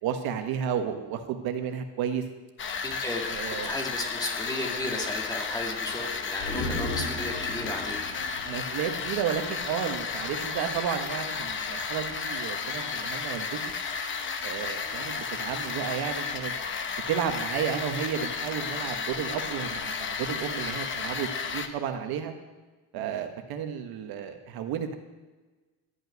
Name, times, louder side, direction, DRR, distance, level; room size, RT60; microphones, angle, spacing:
voice 1, 0.0-2.2 3.3-3.7 8.4-13.6 14.4-16.5 17.1-22.3 22.9-24.9, right 8 dB, 75° right, 6 dB, 1.5 m, -32 dB
sound 1, 2.6-21.7, left 5 dB, 30° left, 0.9 m, -33 dB
voice 2, 2.8-3.2 3.6-8.0, left 1 dB, 10° left, 1 dB, 1.9 m, -34 dB
sound 2, 6.4-9.8 10.1-10.2, left 1 dB, 70° left, 4.3 m, -37 dB
13.0 x 5.6 x 9.3 m, 1.2 s
cardioid pair, 145°, 38 cm